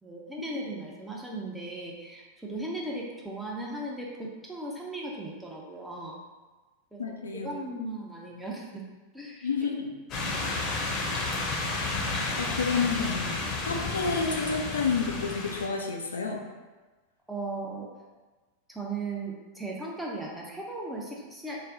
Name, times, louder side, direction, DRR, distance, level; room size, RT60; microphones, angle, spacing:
voice 1, 0.0-6.2 6.9-8.8 9.1-9.5 10.3-10.6 17.3-17.9 18.7-21.6, right 2 dB, 5° right, -3 dB, 0.7 m, -37 dB
voice 2, 7.0-7.5 9.4-10.0 12.4-13.4 13.7-16.4, left 5 dB, 75° left, 1 dB, 0.4 m, -29 dB
sound 1, 10.1-15.7, left 3 dB, 30° left, 0.7 m, -31 dB
3.2 x 2.2 x 3.7 m, 1.2 s
figure-of-eight pair, 90°, 0 cm